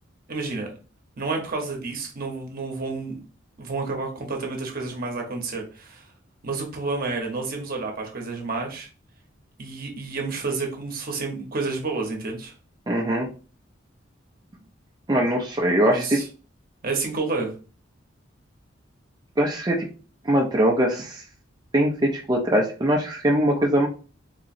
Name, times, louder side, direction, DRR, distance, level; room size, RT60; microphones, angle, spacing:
voice 1, 0.3-0.7 1.2-3.2 3.6-6.0 6.4-8.9 9.6-12.5 15.8-16.3 16.8-17.5, right 3 dB, 50° right, 2 dB, 0.9 m, -30 dB
voice 2, 12.9-13.3 15.1-16.2 19.4-19.9 20.2-21.2 21.7-23.9, right 1 dB, 20° right, -2 dB, 0.5 m, -21 dB
3.8 x 3.0 x 2.5 m, 0.35 s
head